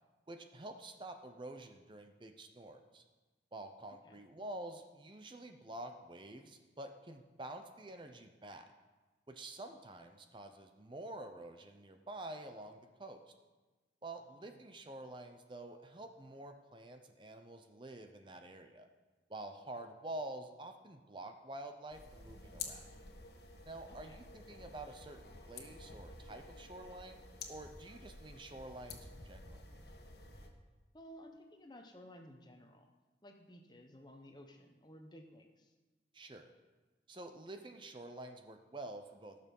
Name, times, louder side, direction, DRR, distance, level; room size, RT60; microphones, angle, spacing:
voice 1, 0.3-3.0 3.5-8.7 9.3-13.2 14.0-18.9 19.3-22.9 23.7-25.2 25.5-27.2 27.5-29.6 36.1-36.5 37.1-39.5, right 1 dB, 25° right, 6 dB, 0.7 m, -48 dB
sound 1, 21.9-30.5, left 4 dB, 65° left, 1.5 m, -51 dB
voice 2, 23.9-24.2 30.9-32.9 33.2-35.7, equal, 25° left, 4 dB, 1.1 m, -56 dB
18.0 x 6.8 x 5.4 m, 1.2 s
head